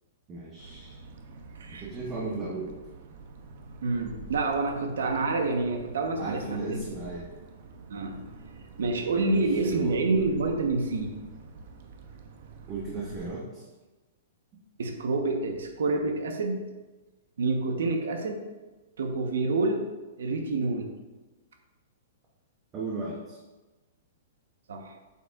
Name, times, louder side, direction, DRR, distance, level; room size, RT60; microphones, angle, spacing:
voice 1, 0.3-1.0 1.7-2.8 6.2-7.3 9.2-10.0 12.7-13.6 22.7-23.4, right 3 dB, 15° right, -4 dB, 0.9 m, -35 dB
sound 1, 0.6-13.3, right 3 dB, 45° right, 0.7 m, -46 dB
voice 2, 3.8-6.8 7.9-8.2 8.8-11.1 14.8-16.6 17.4-18.4 19.0-19.9 20.2-20.9 24.7-24.9, right 3 dB, 90° right, 4 dB, 1.2 m, -28 dB
8.5 x 7.2 x 2.5 m, 1.2 s
hypercardioid pair, 175°, 0 cm